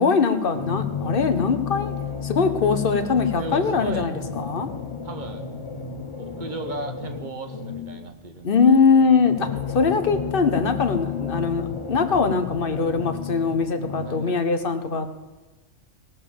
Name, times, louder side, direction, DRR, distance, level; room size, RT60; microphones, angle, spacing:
voice 1, 0.0-1.9 2.2-4.7 8.4-15.2, left 5 dB, 45° left, 8 dB, 1.2 m, -22 dB
sound 1, 0.5-8.1 9.0-14.3, left 6 dB, 25° left, 0.9 m, -32 dB
voice 2, 3.4-4.1 5.0-5.5 6.2-8.8 14.1-14.4, right 3 dB, 40° right, 6 dB, 1.3 m, -35 dB
17.5 x 7.0 x 7.2 m, 1.2 s
omnidirectional pair, 1.3 m